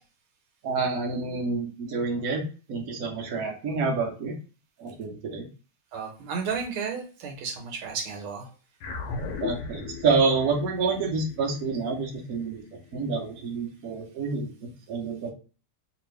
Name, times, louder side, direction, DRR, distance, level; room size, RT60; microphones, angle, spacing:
voice 1, 0.6-4.3 4.8-5.5 9.4-12.6 12.9-15.3, right 4 dB, 55° right, 0 dB, 1.1 m, -28 dB
voice 2, 5.9-8.5, right 5 dB, 75° right, 2 dB, 1.7 m, -33 dB
sound 1, 8.8-13.4, left 4 dB, 80° left, 1.6 m, -38 dB
3.4 x 3.0 x 3.2 m, 0.36 s
omnidirectional pair, 2.4 m